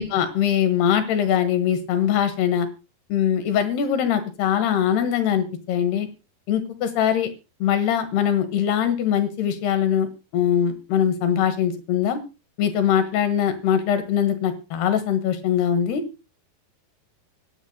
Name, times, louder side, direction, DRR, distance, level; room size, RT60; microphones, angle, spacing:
voice 1, 0.0-2.7 3.1-6.1 6.5-7.3 7.6-12.2 12.6-16.0, left 9 dB, 80° left, 9 dB, 3.6 m, -22 dB
24.0 x 10.5 x 2.2 m, 0.30 s
omnidirectional pair, 4.7 m